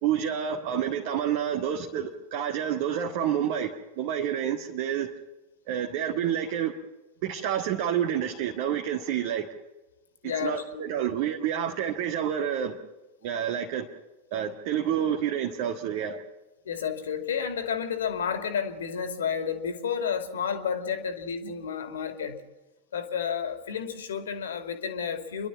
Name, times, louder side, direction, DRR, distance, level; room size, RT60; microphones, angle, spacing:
voice 1, 0.0-5.1 5.7-6.7 7.2-9.5 10.4-12.8 13.2-13.9 14.3-16.2, right 9 dB, 45° right, 2 dB, 1.7 m, -28 dB
voice 2, 10.2-11.0 16.7-22.4 22.9-25.5, left 7 dB, 65° left, 8 dB, 2.4 m, -31 dB
30.0 x 12.0 x 7.2 m, 1.1 s
figure-of-eight pair, 90°, 0 cm